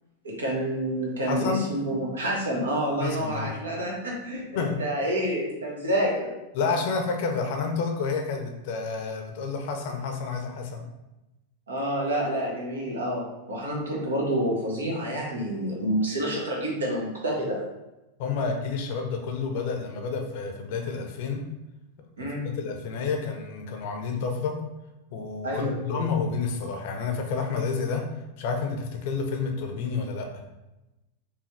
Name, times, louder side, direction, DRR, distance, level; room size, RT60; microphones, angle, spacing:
voice 1, 0.2-6.3 11.7-17.6 22.2-22.5 25.4-26.0, right 1 dB, 70° right, -2 dB, 1.1 m, -28 dB
voice 2, 1.2-1.7 3.0-3.5 4.5-4.8 6.5-10.9 18.2-21.4 22.4-24.6 25.1-28.0 28.4-30.3, left 5 dB, 50° left, 3 dB, 0.6 m, -29 dB
4.6 x 2.7 x 3.2 m, 0.98 s
figure-of-eight pair, 90°, 0 cm